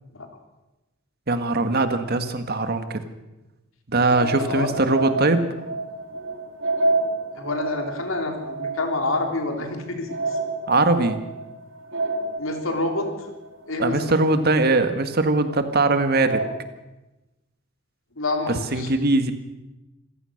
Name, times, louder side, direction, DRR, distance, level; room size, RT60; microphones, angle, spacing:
voice 1, 1.3-3.0 3.9-5.5 10.7-11.2 13.8-16.4 18.5-19.3, right 2 dB, 50° right, 9 dB, 1.7 m, -21 dB
sound 1, 4.1-14.9 15.4-15.5 16.1-16.6, right 2 dB, 65° right, 2.2 m, -29 dB
voice 2, 4.4-4.7 7.3-10.4 12.4-13.1 13.7-14.0 18.2-18.9, left 2 dB, 75° left, 4 dB, 3.7 m, -27 dB
26.5 x 15.5 x 6.6 m, 1.0 s
head